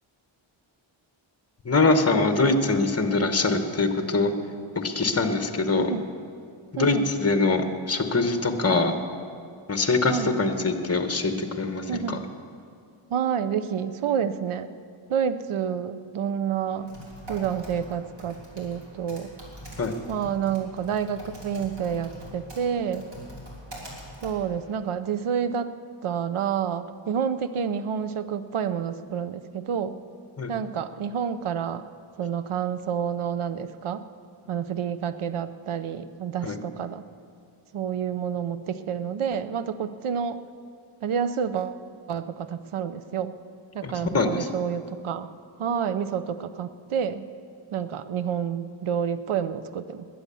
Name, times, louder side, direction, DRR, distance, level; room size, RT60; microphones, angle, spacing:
voice 1, 1.6-4.3 4.7-5.9 6.7-8.9 9.7-12.2 19.8-19.9 30.4-30.5 36.4-36.6 43.8-44.5, left 3 dB, 30° left, 7 dB, 1.1 m, -23 dB
voice 2, 6.8-7.1 10.1-10.3 11.9-12.2 13.1-14.7 15.1-16.9 17.3-19.3 20.1-23.1 24.2-25.7 26.0-30.0 30.5-31.8 32.2-34.0 34.5-37.0 37.7-40.4 41.0-41.8 42.1-43.3 43.7-45.3 45.6-47.2 47.7-50.1, right 7 dB, 80° right, 12 dB, 0.7 m, -29 dB
Typing, 16.7-24.9, equal, 55° right, 3.5 m, -44 dB
20.5 x 8.6 x 6.9 m, 2.4 s
wide cardioid pair, 170°, 49 cm